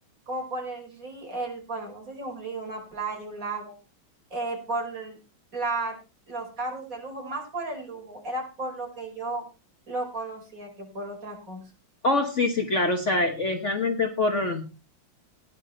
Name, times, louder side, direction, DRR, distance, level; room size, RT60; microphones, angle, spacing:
voice 1, 0.3-3.7 4.3-5.2 5.5-6.0 6.3-9.4 9.9-11.6, right 2 dB, 40° right, 1 dB, 5.2 m, -34 dB
voice 2, 12.0-14.7, left 2 dB, 40° left, 5 dB, 1.5 m, -25 dB
15.5 x 10.5 x 4.3 m, 0.32 s
omnidirectional pair, 2.1 m